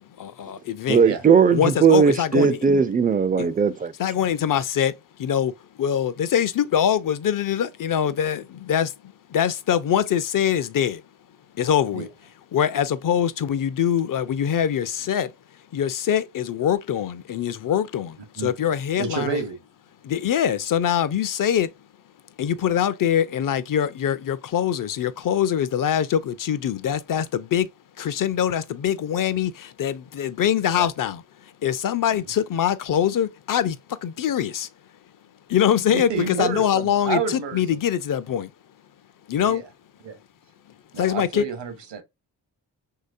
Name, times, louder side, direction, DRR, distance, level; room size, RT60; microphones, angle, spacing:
voice 1, 0.0-1.0 1.5-2.6 3.4-3.5 4.0-5.5 5.8-8.9 9.3-11.0 11.5-12.1 12.5-15.3 15.7-19.4 20.0-21.7 22.4-27.7 28.0-31.2 31.6-34.7 35.5-38.5 39.3-39.6 41.0-41.5, left 9 dB, 45° left, 0.5 m, -23 dB
voice 2, 0.9-3.9, right 6 dB, 20° right, 0.4 m, -18 dB
voice 3, 19.0-19.6 30.7-30.9 32.1-32.2 35.9-37.8 39.4-39.6 40.0-40.1 40.9-42.0, right 5 dB, 65° right, 0.9 m, -29 dB
3.1 x 2.8 x 2.5 m
supercardioid pair, 40°, 45 cm